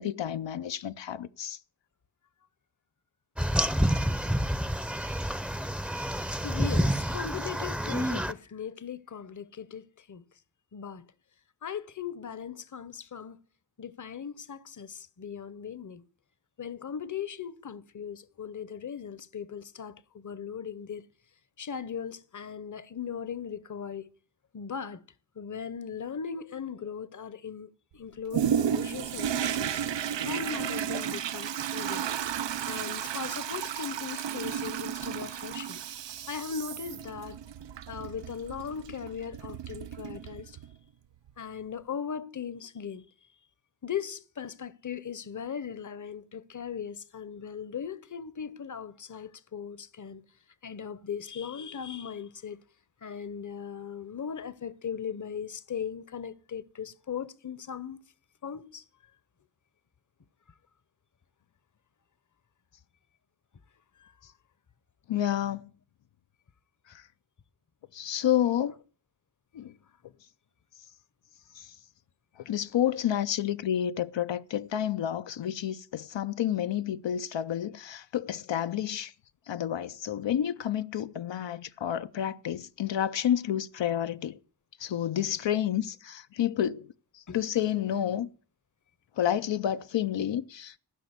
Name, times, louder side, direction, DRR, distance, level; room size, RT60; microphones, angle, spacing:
voice 1, 0.0-1.6 65.1-65.7 66.9-67.1 67.9-68.7 69.5-69.7 71.5-71.8 72.4-79.1 79.5-84.4 84.8-88.3 89.2-90.8, left 10 dB, 85° left, 0.5 m, -30 dB
sound 1, 3.4-8.3, equal, 5° right, 0.6 m, -28 dB
voice 2, 6.4-10.2 10.7-11.1 11.6-13.4 13.8-16.0 16.6-21.0 21.6-24.1 24.5-25.0 25.4-29.9 30.2-32.0 32.6-35.8 36.3-37.4 37.9-40.6 41.4-43.1 43.8-50.2 50.6-52.6 53.0-58.0 58.4-58.8 64.0-64.1 87.3-87.4, left 7 dB, 45° left, 0.7 m, -38 dB
Toilet flush, 28.3-40.7 41.3-41.4, right 9 dB, 85° right, 0.5 m, -33 dB
15.0 x 6.0 x 8.0 m
wide cardioid pair, 85°, 43 cm